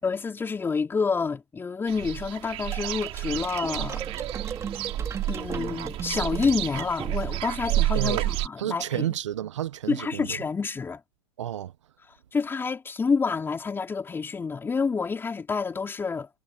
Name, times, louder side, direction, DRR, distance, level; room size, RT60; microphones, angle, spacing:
voice 1, 0.0-4.0 5.3-9.1 9.9-11.0 12.1-16.3, left 5 dB, 15° left, 4.4 m, -28 dB
sound 1, 1.9-8.5, right 16 dB, 40° right, 3.1 m, -30 dB
sound 2, 2.7-7.5, right 6 dB, 20° right, 3.3 m, -37 dB
voice 2, 7.9-8.3 8.6-10.4 11.4-11.7, right 12 dB, 75° right, 1.4 m, -30 dB
hypercardioid pair, 115°, 16 cm